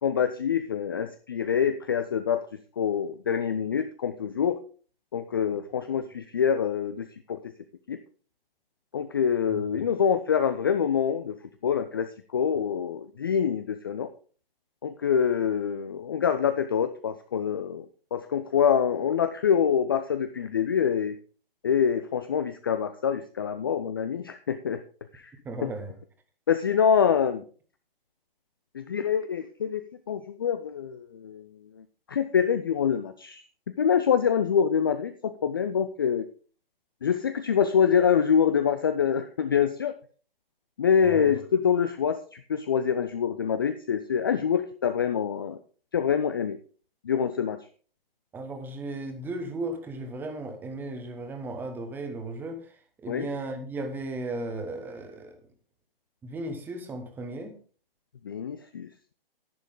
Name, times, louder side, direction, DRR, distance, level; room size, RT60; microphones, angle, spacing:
voice 1, 0.0-2.5 2.8-4.6 5.1-7.5 7.9-8.0 8.9-11.4 11.6-14.1 14.8-17.9 18.1-21.2 21.6-24.8 25.1-25.3 25.6-25.7 26.5-27.4 28.7-31.5 31.8-33.4 33.8-36.3 37.0-39.9 40.8-45.6 45.9-46.6 47.0-47.6 53.1-53.3 58.2-59.1, left 7 dB, 25° left, 9 dB, 0.4 m, -25 dB
voice 2, 25.4-25.9 41.0-41.3 48.3-52.6 53.0-55.3 56.2-57.5, right 2 dB, 5° right, 7 dB, 1.1 m, -35 dB
11.0 x 10.0 x 3.7 m, 0.40 s
figure-of-eight pair, 130°, 29 cm